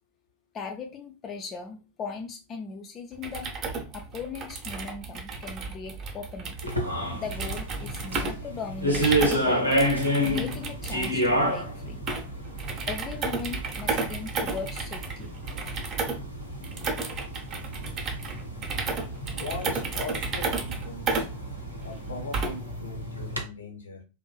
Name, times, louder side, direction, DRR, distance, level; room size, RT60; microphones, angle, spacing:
voice 1, 0.5-3.6 3.9-6.6 7.1-9.7 10.2-12.0 12.9-15.3, left 5 dB, 30° left, 0.3 m, -38 dB
sound 1, 3.1-22.7, right 4 dB, 35° right, 0.6 m, -33 dB
sound 2, 6.6-23.4, equal, 90° right, 0.5 m, -30 dB
voice 2, 19.3-21.3 21.8-24.0, left 3 dB, 70° left, 0.7 m, -39 dB
2.5 x 2.2 x 2.3 m
figure-of-eight pair, 90°, 0 cm